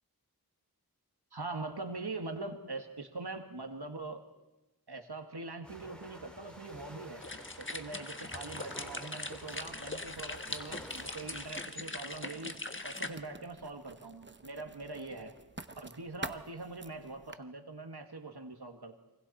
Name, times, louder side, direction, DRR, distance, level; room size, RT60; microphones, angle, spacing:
voice 1, 1.3-4.2 4.9-7.2 7.6-12.5 12.8-15.4 15.8-19.0, right 3 dB, 85° right, 5 dB, 1.9 m, -43 dB
sound 1, 5.6-11.5, equal, 5° left, 3.6 m, -51 dB
sound 2, 7.2-13.1, left 2 dB, 30° left, 1.3 m, -41 dB
Writing, 9.5-17.4, right 3 dB, 30° right, 0.8 m, -50 dB
27.0 x 25.0 x 4.3 m, 1.0 s
wide cardioid pair, 40°, 38 cm